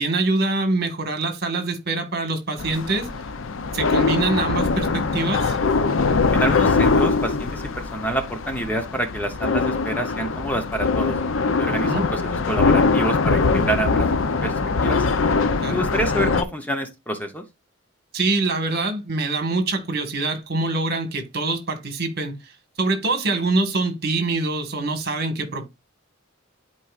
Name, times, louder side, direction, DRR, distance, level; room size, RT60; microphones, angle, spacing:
voice 1, 0.0-3.1 3.7-5.6 11.8-12.0 15.6-15.8 18.1-22.4 22.8-25.6, right 3 dB, 55° right, 1.7 m, -24 dB
sound 1, 2.6-16.4, left 4 dB, 85° left, 0.6 m, -22 dB
voice 2, 6.3-11.2 11.6-14.1 14.4-14.6 14.8-15.1 15.7-17.4, right 1 dB, 10° left, 0.9 m, -27 dB
11.5 x 4.6 x 2.4 m
head